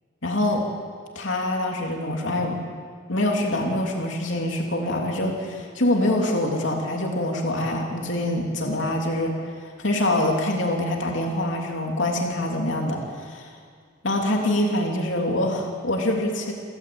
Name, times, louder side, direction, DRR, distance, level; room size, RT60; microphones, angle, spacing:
voice 1, 0.2-0.6 1.1-2.6 3.1-13.5 14.0-16.5, left 1 dB, 65° left, 0 dB, 3.2 m, -25 dB
29.5 x 13.5 x 8.8 m, 2.1 s
head